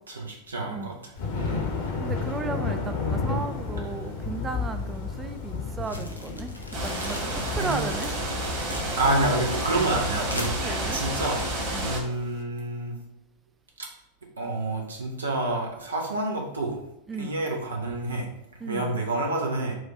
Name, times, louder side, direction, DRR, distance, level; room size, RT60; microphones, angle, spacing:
voice 1, 0.1-1.0 1.3-1.7 7.3-7.8 8.9-10.5 10.9-11.5 11.8-13.0 13.8-13.9 14.4-16.8 17.2-18.3 18.7-19.7, right 2 dB, 75° right, 0 dB, 0.8 m, -28 dB
Thunder, 1.2-12.3, left 4 dB, 50° left, 1.1 m, -33 dB
voice 2, 2.0-8.1 10.6-11.0 11.7-11.9 17.1-17.3 18.6-19.0, right 3 dB, 15° right, 7 dB, 0.3 m, -35 dB
sound 1, 5.8-11.9, equal, 90° left, 0.6 m, -40 dB
sound 2, 6.7-12.0, right 1 dB, 40° right, 1.5 m, -30 dB
4.8 x 2.6 x 4.2 m, 0.81 s
figure-of-eight pair, 90°, 0 cm